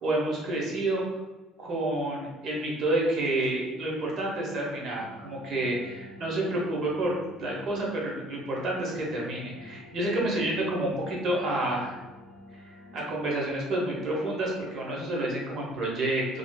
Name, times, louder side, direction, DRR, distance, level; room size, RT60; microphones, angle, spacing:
voice 1, 0.0-1.0 1.6-12.0 12.9-16.4, right 1 dB, 40° right, -3 dB, 0.7 m, -29 dB
sound 1, 5.0-13.5, left 1 dB, 20° left, 0.6 m, -49 dB
3.1 x 2.4 x 2.2 m, 1.2 s
cardioid pair, 170°, 0 cm